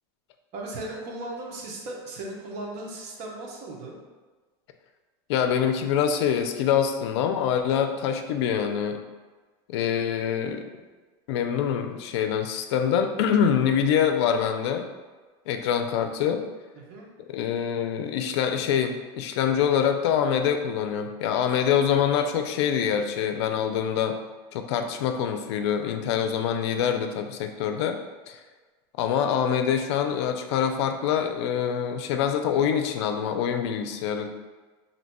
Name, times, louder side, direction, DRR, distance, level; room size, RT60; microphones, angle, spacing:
voice 1, 0.5-4.0 16.7-17.1, right 2 dB, 50° right, -1 dB, 0.8 m, -37 dB
voice 2, 5.3-9.0 9.7-10.7 11.3-14.9 15.5-16.4 17.3-24.2 24.5-28.0 28.3-28.4 29.0-34.3, left 8 dB, 80° left, 6 dB, 0.4 m, -25 dB
2.8 x 2.2 x 4.1 m, 1.3 s
supercardioid pair, 130°, 14 cm